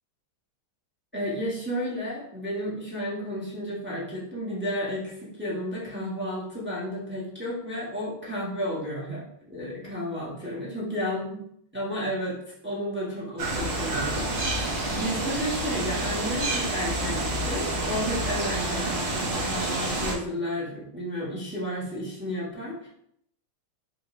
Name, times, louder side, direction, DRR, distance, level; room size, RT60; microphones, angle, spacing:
voice 1, 1.1-11.4 11.7-22.9, equal, 10° right, -7 dB, 0.6 m, -32 dB
sound 1, 13.4-20.1, right 2 dB, 70° right, 0.6 m, -28 dB
3.2 x 2.9 x 4.1 m, 0.70 s
omnidirectional pair, 2.4 m